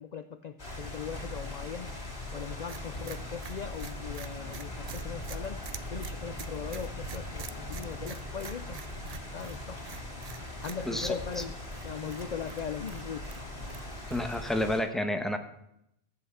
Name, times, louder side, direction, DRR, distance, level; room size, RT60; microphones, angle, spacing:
voice 1, 0.0-5.6 5.9-8.8 9.3-9.9 10.6-13.4 13.7-13.8, left 7 dB, 50° left, 10 dB, 0.6 m, -39 dB
sound 1, 0.6-14.8, left 1 dB, 90° left, 3.4 m, -40 dB
sound 2, 2.7-14.7, right 7 dB, 45° right, 0.6 m, -47 dB
voice 2, 14.1-15.4, left 1 dB, ahead, 6 dB, 1.1 m, -30 dB
13.5 x 8.0 x 7.2 m, 0.79 s
omnidirectional pair, 1.0 m